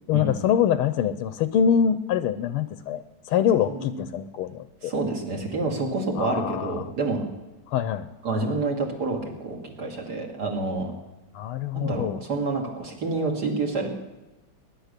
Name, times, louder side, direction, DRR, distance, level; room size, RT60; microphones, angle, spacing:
voice 1, 0.1-4.9 6.2-6.9 7.7-8.1 11.3-12.2, left 8 dB, 85° left, 12 dB, 1.6 m, -24 dB
voice 2, 3.7-4.0 4.8-7.2 8.2-10.9 11.7-13.9, right 3 dB, 45° right, 2 dB, 2.8 m, -28 dB
20.0 x 10.5 x 6.7 m, 1.1 s
omnidirectional pair, 2.4 m